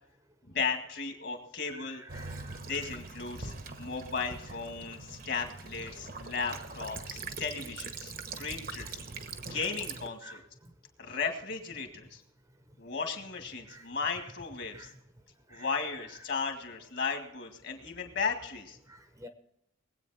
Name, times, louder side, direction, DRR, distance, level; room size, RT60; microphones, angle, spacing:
voice 1, 0.5-2.0 2.6-9.0 9.5-10.4 11.0-12.2 12.8-14.9 15.5-18.8, left 5 dB, 50° left, 5 dB, 2.0 m, -35 dB
voice 2, 1.7-2.6 8.8-8.9 9.5-9.7 10.2-10.4 13.7-13.8 14.7-14.9 15.5-15.9 18.9-19.3, equal, 15° right, 7 dB, 0.9 m, -49 dB
Child speech kid speaking / Bird vocalization bird call bird song / Stream, 2.1-10.1, right 4 dB, 45° right, 1.1 m, -42 dB
21.5 x 8.5 x 4.2 m, 0.76 s
head